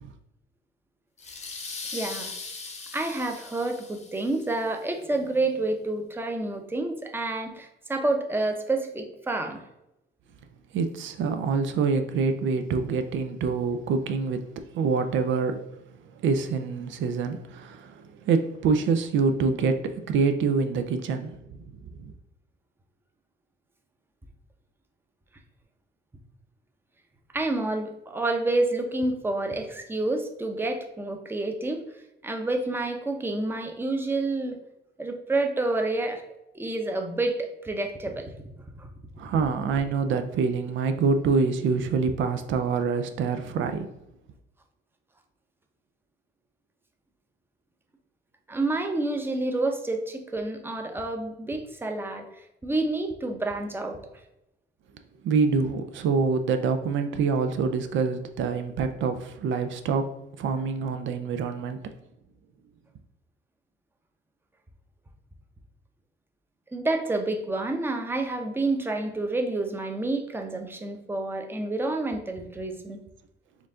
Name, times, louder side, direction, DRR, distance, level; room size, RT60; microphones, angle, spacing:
sound 1, 1.2-4.6, left 3 dB, 35° left, 0.8 m, -39 dB
voice 1, 1.9-2.3 2.9-9.6 27.3-31.8 32.2-34.6 35.0-36.2 36.5-38.3 38.8-38.9 48.5-52.3 52.6-54.0 66.7-73.0, right 2 dB, 10° right, 4 dB, 0.6 m, -28 dB
voice 2, 10.7-14.4 14.7-15.6 16.2-21.4 22.0-22.1 39.2-43.9 55.2-60.1 60.4-61.8, right 5 dB, 75° right, 7 dB, 0.4 m, -26 dB
4.5 x 2.5 x 3.6 m, 0.87 s
cardioid pair, 90°, 20 cm